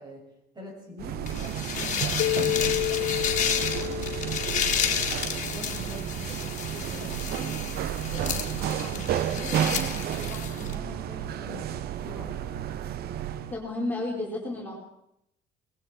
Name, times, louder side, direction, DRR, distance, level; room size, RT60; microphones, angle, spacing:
voice 1, 0.0-4.1 4.7-7.7 8.0-11.7 12.0-12.4, left 1 dB, 25° right, -1 dB, 6.4 m, -44 dB
sound 1, 1.0-13.6, right 10 dB, 70° right, 0.9 m, -32 dB
sound 2, 1.3-10.7, left 7 dB, 45° left, 2.2 m, -31 dB
Keyboard (musical), 2.2-5.4, left 18 dB, 90° left, 0.9 m, -30 dB
voice 2, 13.5-14.7, left 2 dB, 10° left, -4 dB, 4.5 m, -31 dB
20.5 x 15.5 x 4.4 m, 0.82 s
cardioid pair, 110°, 17 cm